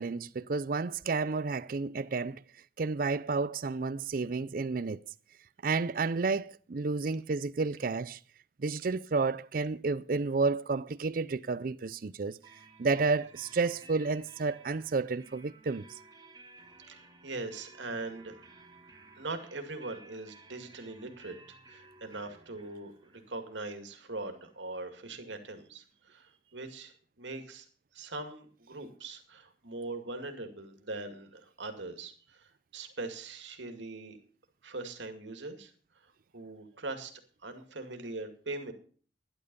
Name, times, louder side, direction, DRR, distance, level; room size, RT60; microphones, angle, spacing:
voice 1, 0.0-2.4 2.8-5.0 5.6-8.2 8.6-12.4 12.8-15.8, right 4 dB, 50° right, 0.5 m, -31 dB
sound 1, 12.4-26.0, right 3 dB, 20° right, 1.7 m, -57 dB
voice 2, 16.9-18.3 19.2-21.3 21.7-25.8 26.1-27.7 27.9-34.2 34.6-35.7 36.3-37.1 37.4-38.7, right 2 dB, 85° right, 2.3 m, -41 dB
12.0 x 11.0 x 5.3 m
head